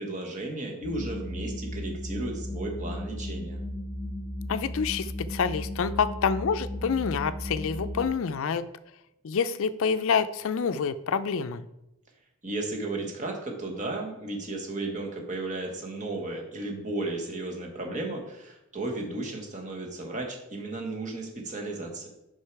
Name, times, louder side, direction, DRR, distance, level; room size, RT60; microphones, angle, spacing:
voice 1, 0.0-3.6 12.4-22.1, right 2 dB, 35° right, 1 dB, 1.3 m, -34 dB
sound 1, 0.8-8.1, left 1 dB, 70° right, 3.0 m, -35 dB
voice 2, 4.5-8.7 9.2-11.7, left 6 dB, 60° left, 13 dB, 0.4 m, -27 dB
6.6 x 5.4 x 4.6 m, 0.88 s
head